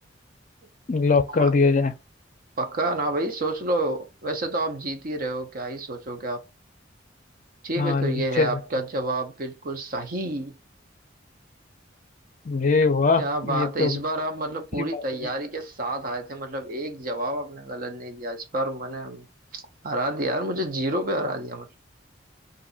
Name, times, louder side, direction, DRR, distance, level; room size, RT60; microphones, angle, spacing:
voice 1, 0.9-1.9 7.8-8.6 12.4-14.0 14.8-15.3, left 4 dB, 40° left, 0.5 m, -22 dB
voice 2, 2.6-6.4 7.6-10.5 13.2-19.3 19.5-21.7, right 1 dB, 50° right, 0.7 m, -29 dB
2.6 x 2.6 x 3.9 m
head